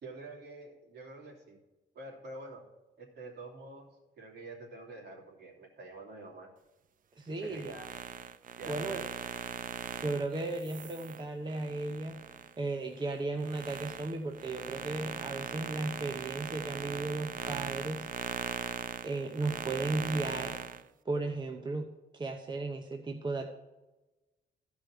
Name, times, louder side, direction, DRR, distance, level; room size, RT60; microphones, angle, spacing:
voice 1, 0.0-1.6 1.9-2.6 3.0-3.9 4.2-6.5 7.3-7.9 8.6-9.3, right 2 dB, 60° right, -1 dB, 2.9 m, -47 dB
voice 2, 7.2-7.7 8.7-9.0 10.0-12.2 12.6-18.1 19.0-20.6 21.0-21.9 22.1-23.5, right 2 dB, 25° right, 4 dB, 0.8 m, -35 dB
sound 1, 7.4-12.5 13.0-20.8, right 8 dB, 45° right, 0.4 m, -40 dB
13.5 x 5.1 x 6.5 m, 1.1 s
cardioid pair, 130°, 20 cm